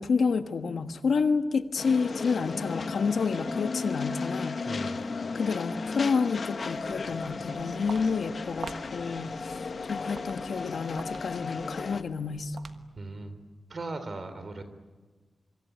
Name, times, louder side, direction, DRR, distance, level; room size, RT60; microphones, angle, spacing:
voice 1, 0.0-4.6 5.3-12.6, left 5 dB, 85° left, 8 dB, 1.4 m, -29 dB
sound 1, 1.8-12.0, left 4 dB, 60° left, 1.3 m, -35 dB
voice 2, 4.7-5.0 13.0-13.4 13.7-14.6, right 2 dB, 50° right, 10 dB, 3.6 m, -38 dB
Walk footsteps, 6.6-13.1, right 5 dB, 80° right, 1.4 m, -47 dB
26.0 x 24.5 x 9.4 m, 1.3 s
wide cardioid pair, 85°, 0 cm